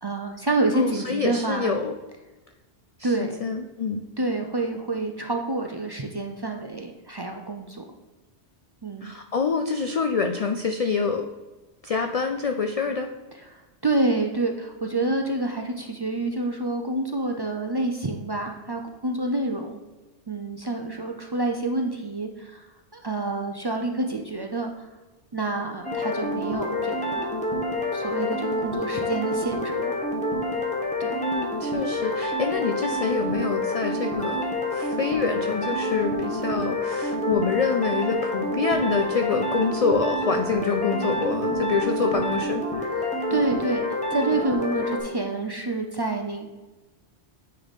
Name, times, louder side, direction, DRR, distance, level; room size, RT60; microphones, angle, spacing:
voice 1, 0.0-1.7 3.0-3.4 4.2-7.8 8.8-9.1 13.5-19.8 20.3-22.6 22.9-24.7 25.3-27.3 27.9-29.9 31.0-31.2 43.0-43.8 44.1-46.5, right 2 dB, 40° right, 3 dB, 0.3 m, -28 dB
voice 2, 0.7-1.9 3.0-4.0 9.0-11.3 11.8-13.1 31.2-43.0, left 5 dB, 70° left, 5 dB, 0.3 m, -26 dB
sound 1, 25.8-45.0, left 1 dB, 5° left, 0.9 m, -28 dB
9.2 x 3.3 x 4.1 m, 1.2 s
omnidirectional pair, 1.2 m